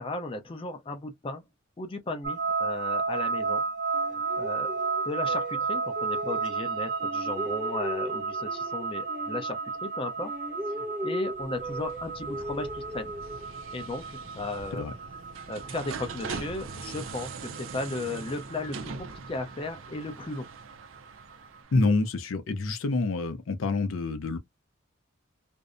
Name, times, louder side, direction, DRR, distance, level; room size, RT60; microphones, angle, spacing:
voice 1, 0.0-1.4 1.8-3.6 4.0-4.7 5.1-10.3 11.0-13.1 13.7-14.9 15.5-20.5, left 2 dB, 25° left, 0.5 m, -36 dB
sound 1, 2.2-21.3, right 5 dB, 40° right, 0.7 m, -33 dB
sound 2, 3.9-6.7 7.0-10.0 10.2-13.7, equal, 10° right, 0.7 m, -38 dB
sound 3, 11.3-22.0, right 4 dB, 75° right, 0.4 m, -42 dB
voice 2, 21.7-24.4, left 3 dB, 80° left, 0.5 m, -27 dB
2.6 x 2.0 x 2.4 m
head